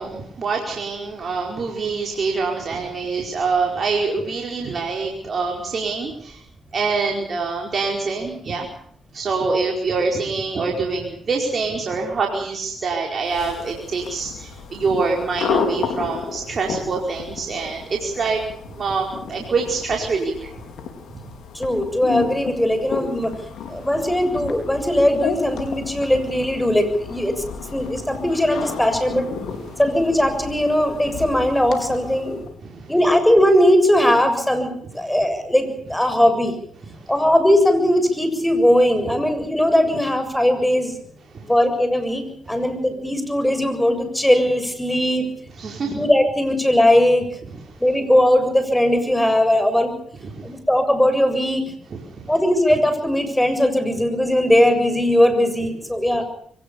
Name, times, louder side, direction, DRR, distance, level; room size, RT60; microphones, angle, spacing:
voice 1, 0.0-6.4 6.7-8.7 9.1-18.4 18.7-20.5 29.7-29.8 32.6-32.9 36.9-37.0 41.3-41.5 45.6-46.0 47.7-47.8 50.3-50.5 52.1-52.2, right 4 dB, 55° right, 0 dB, 4.8 m, -25 dB
sound 1, 13.2-32.6, left 6 dB, 75° left, 4.3 m, -32 dB
voice 2, 21.5-23.3 23.7-29.3 29.8-32.4 32.9-36.5 37.1-41.0 41.4-45.3 45.9-47.3 47.8-49.9 50.4-51.6 52.3-56.2, left 1 dB, 5° left, 8 dB, 7.4 m, -19 dB
23.5 x 19.5 x 7.1 m, 0.63 s
supercardioid pair, 50°, 0 cm